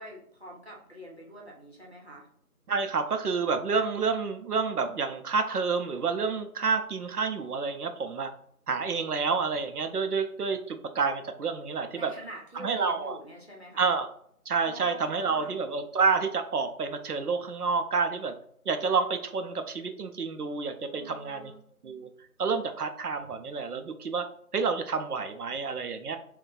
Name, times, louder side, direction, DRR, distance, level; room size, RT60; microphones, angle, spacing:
voice 1, 0.0-2.3 11.9-13.9 14.6-15.5 20.9-21.6, right 1 dB, 45° left, -2 dB, 0.8 m, -46 dB
voice 2, 2.7-8.3 8.7-12.1 12.6-13.2 13.8-14.1 14.5-18.3 18.7-21.5 21.8-22.1 22.4-24.2 24.5-26.2, right 5 dB, 75° right, 7 dB, 0.6 m, -29 dB
2.3 x 2.2 x 3.9 m, 0.65 s
figure-of-eight pair, 175°, 45 cm